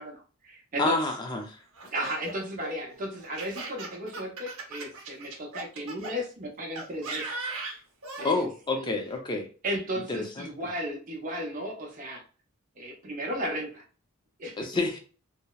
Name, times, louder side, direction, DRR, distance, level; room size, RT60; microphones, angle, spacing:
voice 1, 0.0-1.0 1.9-7.2 8.2-8.5 8.7-9.0 9.6-12.2 12.8-13.8 14.4-14.6, equal, 40° right, 0 dB, 0.7 m, -34 dB
voice 2, 0.8-1.6 8.2-9.5 10.1-10.5 14.6-15.0, left 2 dB, 20° left, 3 dB, 0.4 m, -28 dB
Laughter, 1.7-6.1 6.8-8.3, right 3 dB, 75° right, 0.7 m, -38 dB
2.8 x 2.0 x 2.2 m, 0.37 s
head